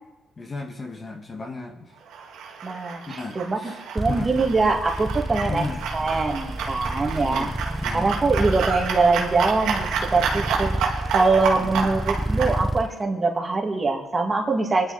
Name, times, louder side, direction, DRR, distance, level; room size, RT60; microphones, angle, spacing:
voice 1, 0.4-2.0 3.1-3.8 4.1-4.3 5.5-5.8 7.1-7.5 7.8-8.1 11.5-11.9, left 3 dB, 30° left, 3 dB, 1.9 m, -35 dB
sound 1, 2.1-12.6, right 5 dB, 90° right, 2.0 m, -30 dB
voice 2, 2.6-5.6 5.9-7.5 7.9-14.9, right 3 dB, 30° right, 1 dB, 2.5 m, -23 dB
sound 2, 4.0-12.9, right 1 dB, 5° right, 0.5 m, -30 dB
25.0 x 11.0 x 4.3 m, 1.0 s
cardioid pair, 90°, 0 cm